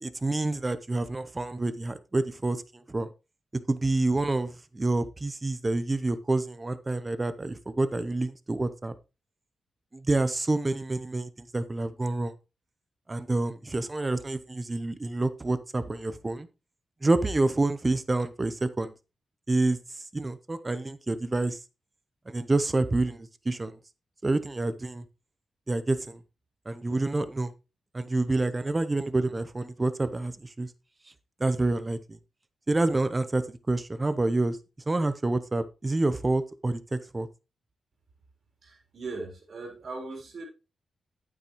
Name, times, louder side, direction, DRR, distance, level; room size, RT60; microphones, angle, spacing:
voice 1, 0.0-3.1 3.7-8.9 9.9-12.3 13.1-16.5 17.0-18.9 19.5-19.8 20.1-21.6 22.3-23.8 24.2-25.0 25.7-26.2 26.7-27.5 27.9-30.7 31.4-32.2 32.7-34.6 34.9-37.3, right 2 dB, 25° right, 13 dB, 0.8 m, -28 dB
voice 2, 38.6-40.4, right 3 dB, 60° right, 2 dB, 3.6 m, -39 dB
8.9 x 8.5 x 3.1 m, 0.29 s
cardioid pair, 85°, 0 cm